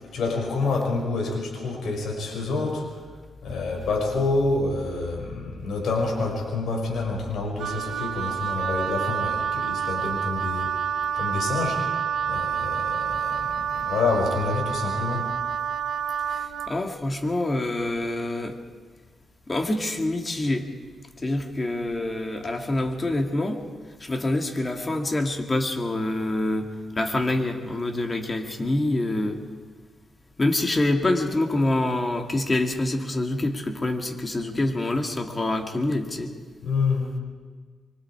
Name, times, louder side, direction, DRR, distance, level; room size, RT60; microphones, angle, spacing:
voice 1, 0.1-2.9 3.4-10.9 11.1-11.8 12.2-15.3 36.6-37.2, left 3 dB, 75° left, -1 dB, 5.7 m, -27 dB
Wind instrument woodwind instrument, 7.6-16.8, right 8 dB, 80° right, 1.0 m, -28 dB
voice 2, 16.3-18.6 19.5-20.7 21.2-23.6 24.0-29.4 30.4-36.3, left 2 dB, 25° left, 4 dB, 2.4 m, -26 dB
25.0 x 24.0 x 4.9 m, 1.5 s
cardioid pair, 95°, 0 cm